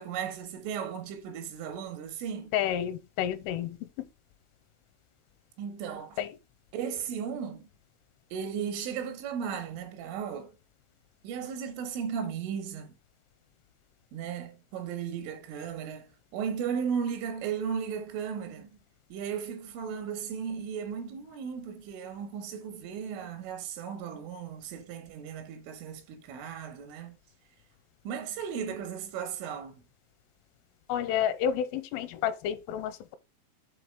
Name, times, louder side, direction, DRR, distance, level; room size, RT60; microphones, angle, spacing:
voice 1, 0.0-2.5 5.6-6.2 6.7-7.7 8.3-10.5 11.2-12.9 14.1-18.8 19.1-27.2 28.1-29.8, right 7 dB, 80° right, 3.7 m, -36 dB
voice 2, 2.5-3.9 6.2-6.4 30.9-33.2, left 9 dB, 90° left, 3.3 m, -30 dB
7.8 x 3.9 x 5.2 m
omnidirectional pair, 5.7 m